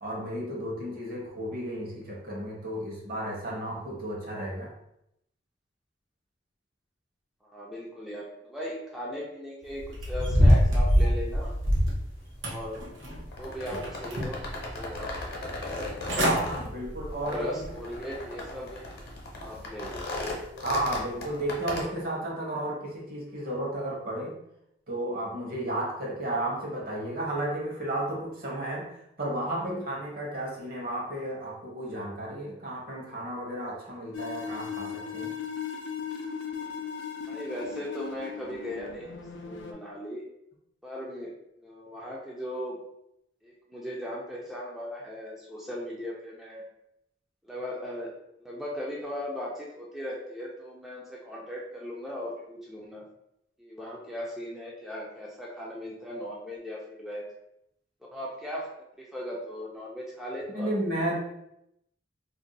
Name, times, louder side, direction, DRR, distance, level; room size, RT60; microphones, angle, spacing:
voice 1, 0.0-4.7 16.2-17.6 20.6-24.4 24.9-28.9 29.2-35.3 60.5-61.2, right 1 dB, 50° right, -3 dB, 1.0 m, -33 dB
voice 2, 7.4-11.5 12.4-12.8 13.4-14.4 14.7-15.6 16.0-16.3 17.1-18.9 19.4-20.1 37.3-40.2 40.8-42.8 43.4-46.6 47.4-48.1 48.4-53.0 53.6-57.3 58.1-58.7 59.0-60.7, equal, ahead, -5 dB, 0.4 m, -38 dB
sound 1, 9.6-21.8, left 2 dB, 55° left, 0.8 m, -39 dB
sound 2, 10.0-12.0 12.4-13.3 13.7-14.5 14.9-15.0 15.8-15.9 16.1-16.4 16.9-17.1 17.6-17.7, equal, 85° right, 0.7 m, -23 dB
sound 3, 34.1-39.7, left 7 dB, 75° left, 0.4 m, -37 dB
2.6 x 2.2 x 3.9 m, 0.80 s
head